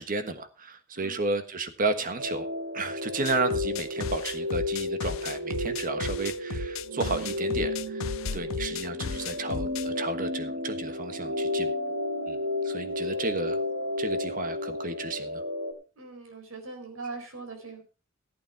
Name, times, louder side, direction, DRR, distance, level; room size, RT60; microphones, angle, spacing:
voice 1, 0.0-2.5 2.7-8.1 8.3-11.7 12.3-12.4 12.6-13.6 14.0-15.4, right 3 dB, 40° right, 10 dB, 1.4 m, -32 dB
voice 2, 0.9-1.3 16.0-17.8, right 3 dB, 85° right, 3 dB, 4.4 m, -41 dB
sound 1, 2.2-15.7, left 1 dB, 60° right, 2.6 m, -32 dB
sound 2, 3.3-9.9, left 5 dB, 70° left, 0.6 m, -35 dB
14.5 x 8.7 x 4.6 m, 0.32 s
head